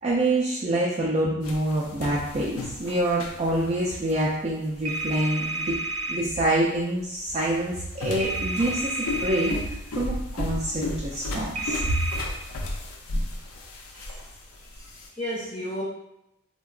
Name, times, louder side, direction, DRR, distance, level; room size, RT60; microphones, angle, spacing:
voice 1, 0.0-5.7 6.1-12.0, right 1 dB, 30° right, -6 dB, 0.3 m, -26 dB
sound 1, 1.4-15.1, left 2 dB, 65° left, 0.4 m, -35 dB
sound 2, 4.9-6.2 8.2-9.5 11.6-12.2, right 2 dB, 75° right, 0.6 m, -31 dB
voice 2, 13.9-14.3 14.7-15.8, equal, 20° left, -7 dB, 0.5 m, -34 dB
3.6 x 2.2 x 2.4 m, 0.86 s
head